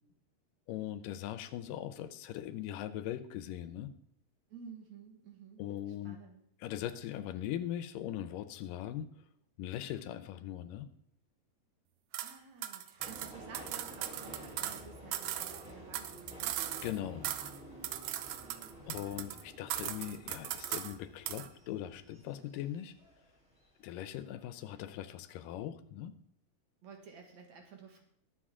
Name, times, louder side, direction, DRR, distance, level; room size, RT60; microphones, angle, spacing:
voice 1, 0.7-3.9 5.6-6.2 6.6-9.1 9.6-10.9 16.8-17.3 18.9-22.9 23.8-26.1, left 11 dB, 80° left, 12 dB, 2.3 m, -40 dB
voice 2, 4.5-5.6 6.0-6.4 12.2-16.6 18.4-19.5 26.8-28.0, right 6 dB, 60° right, 2 dB, 2.5 m, -53 dB
sound 1, 12.1-12.3 12.6-14.8 15.1-17.0 17.2-17.6 17.8-19.4 19.7-20.9 21.3-21.5, right 12 dB, 80° right, 1.7 m, -39 dB
Subway metro underground, 13.0-23.7 24.1-24.8 25.1-25.2, equal, ahead, 2.3 m, -51 dB
20.5 x 7.0 x 3.7 m, 0.68 s
omnidirectional pair, 3.9 m